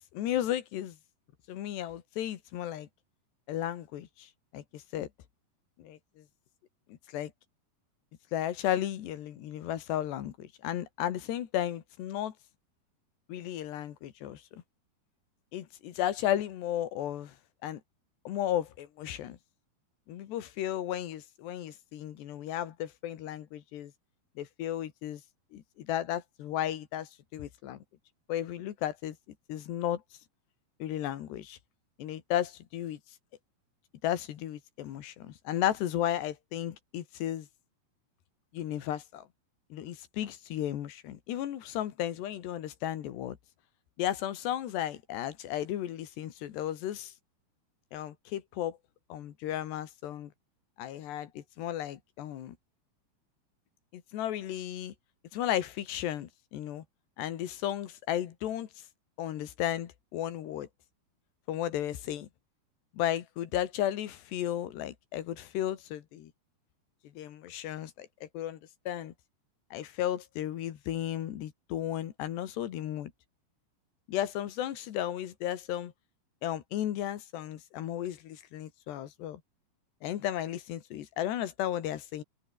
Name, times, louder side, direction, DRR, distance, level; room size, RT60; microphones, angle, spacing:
voice 1, 0.1-1.0 1.5-2.9 3.5-5.1 5.8-6.0 6.9-7.3 8.3-12.3 13.3-14.6 15.5-17.3 17.6-17.8 18.3-19.4 20.1-23.9 24.4-25.2 25.5-27.8 28.3-29.2 29.5-30.0 30.8-31.6 32.0-33.0 34.0-37.5 38.5-39.3 39.7-43.4 44.0-47.1 47.9-48.8 49.1-50.3 50.8-52.6 53.9-54.9 55.3-56.8 57.2-58.7 59.2-60.7 61.5-62.3 62.9-66.3 67.2-68.6 68.9-69.1 69.7-73.1 74.1-75.9 76.4-79.4 80.0-82.2, left 12 dB, 85° left, 4.0 m, -34 dB
omnidirectional pair, 4.7 m